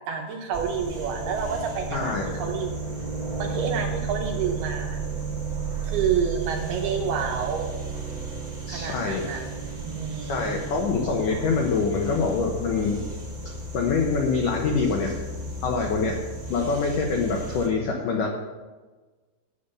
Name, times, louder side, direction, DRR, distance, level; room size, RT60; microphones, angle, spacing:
voice 1, 0.1-2.7 3.4-5.0 5.8-7.7 8.7-9.4 9.8-10.5, right 6 dB, 75° right, 2 dB, 2.5 m, -29 dB
sound 1, 0.5-17.7, right 3 dB, 45° right, 1.5 m, -33 dB
voice 2, 1.9-2.3 8.7-9.3 10.3-13.0 13.5-15.2 15.6-16.2 16.5-18.3, left 4 dB, 90° left, 1 dB, 1.8 m, -25 dB
9.4 x 8.3 x 6.7 m, 1.3 s
omnidirectional pair, 5.4 m